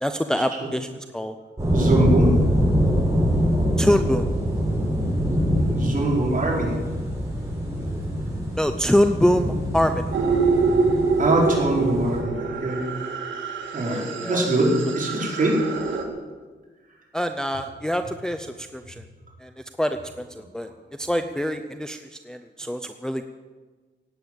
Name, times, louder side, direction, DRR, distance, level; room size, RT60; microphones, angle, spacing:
voice 1, 0.0-1.3 3.8-4.3 8.6-10.1 13.8-14.5 17.1-19.0 19.4-19.5 19.8-20.7 21.0-23.2, equal, 5° left, 7 dB, 0.6 m, -25 dB
sound 1, 1.6-12.2, equal, 15° right, 5.9 m, -24 dB
voice 2, 1.7-2.4 5.5-6.7 11.2-12.8 13.7-15.6, right 2 dB, 45° right, -3 dB, 4.8 m, -23 dB
sound 2, 10.1-16.0, right 4 dB, 85° right, 2.2 m, -25 dB
17.0 x 9.1 x 8.0 m, 1.4 s
wide cardioid pair, 145°, 19 cm